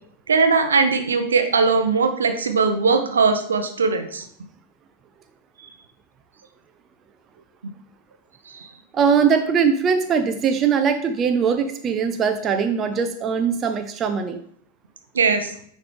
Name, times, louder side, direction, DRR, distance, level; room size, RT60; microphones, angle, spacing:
voice 1, 0.3-4.3 8.5-8.7 15.1-15.5, right 4 dB, 70° right, 7 dB, 0.6 m, -20 dB
voice 2, 8.9-14.4, right 6 dB, 25° right, 7 dB, 0.5 m, -21 dB
9.4 x 3.2 x 3.4 m, 0.64 s
figure-of-eight pair, 90°, 0 cm